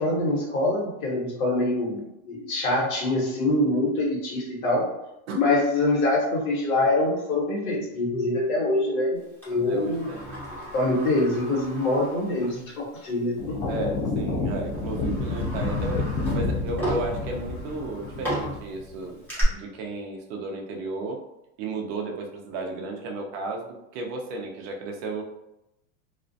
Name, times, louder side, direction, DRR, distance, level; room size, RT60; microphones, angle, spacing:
voice 1, 0.0-4.9 5.3-10.1 10.7-13.5, left 2 dB, 90° left, -3 dB, 1.2 m, -25 dB
Sliding door, 9.4-12.7 13.0-13.1 14.0-14.2 14.7-19.4, equal, 5° left, 0.7 m, -36 dB
voice 2, 9.5-10.4 13.7-21.2 21.6-25.2, right 2 dB, 35° right, 2 dB, 0.4 m, -34 dB
sound 1, 13.4-19.0, left 3 dB, 45° left, 0.5 m, -29 dB
2.4 x 2.1 x 2.5 m, 0.88 s
supercardioid pair, 145°, 41 cm